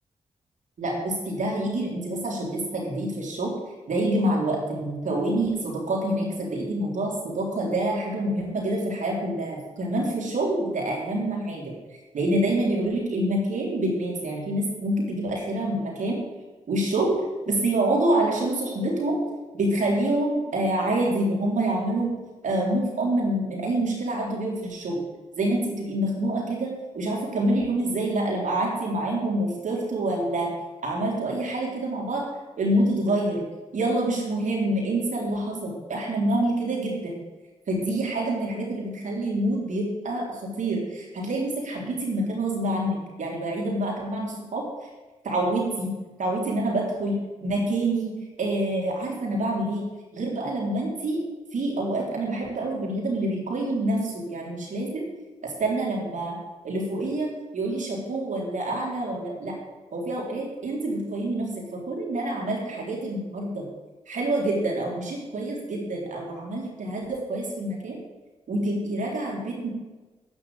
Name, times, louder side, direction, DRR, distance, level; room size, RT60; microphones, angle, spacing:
voice 1, 0.8-3.5 3.9-11.7 12.1-16.2 16.7-19.2 19.5-22.2 22.4-25.0 25.4-30.5 30.8-32.3 32.6-33.4 33.7-37.2 37.7-44.6 45.2-49.9 50.1-51.2 51.5-55.1 55.4-56.4 56.6-59.6 59.9-63.7 64.1-68.0 68.5-69.7, right 1 dB, 70° right, -1 dB, 3.8 m, -27 dB
9.8 x 6.2 x 8.6 m, 1.2 s
cardioid pair, 50°, 14 cm